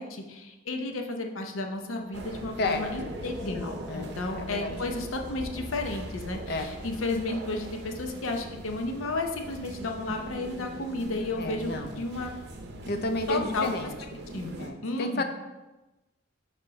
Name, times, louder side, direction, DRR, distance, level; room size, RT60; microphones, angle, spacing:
voice 1, 0.0-12.3 13.0-13.7 14.3-15.2, left 2 dB, 90° left, 3 dB, 0.7 m, -33 dB
sound 1, 1.7-6.7, equal, ahead, 1.0 m, -47 dB
sound 2, 2.1-14.7, right 1 dB, 55° right, 0.6 m, -41 dB
voice 2, 2.6-3.2 3.9-4.8 6.5-6.7 11.4-12.0 12.8-14.2 14.6-15.2, left 2 dB, 50° left, 7 dB, 0.5 m, -32 dB
5.5 x 3.5 x 5.2 m, 1.1 s
head